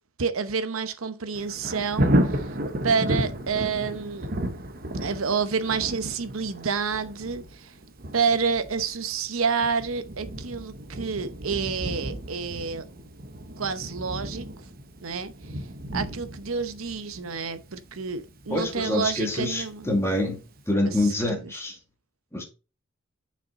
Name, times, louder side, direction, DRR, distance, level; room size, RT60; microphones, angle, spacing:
voice 1, 0.2-2.6 2.8-4.3 5.0-7.7 8.1-12.8 13.6-14.5 15.0-15.6 15.9-19.9 20.8-21.5, right 5 dB, 80° right, 0.9 m, -29 dB
Thunder, 1.3-20.1 20.6-20.7, right 1 dB, 45° right, 1.0 m, -32 dB
voice 2, 18.5-21.8 22.3-22.4, left 1 dB, 15° left, 2.2 m, -26 dB
7.3 x 5.8 x 4.0 m
head